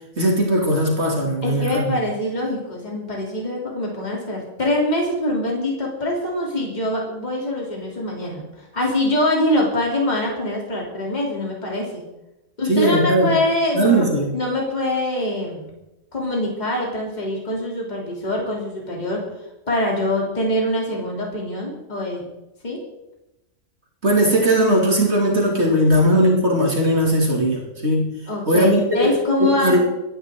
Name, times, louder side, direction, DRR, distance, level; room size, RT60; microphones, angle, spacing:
voice 1, 0.2-1.9 12.7-13.3 13.7-14.3 24.0-28.1 28.5-29.1 29.4-29.8, equal, 45° right, -1 dB, 3.0 m, -18 dB
voice 2, 1.4-8.5 8.7-12.0 12.6-14.1 14.3-15.7 16.1-19.2 19.7-22.2 22.6-22.8 25.9-26.0 28.3-29.8, left 1 dB, 30° left, -2 dB, 3.3 m, -24 dB
24.5 x 10.5 x 3.8 m, 0.95 s
omnidirectional pair, 1.6 m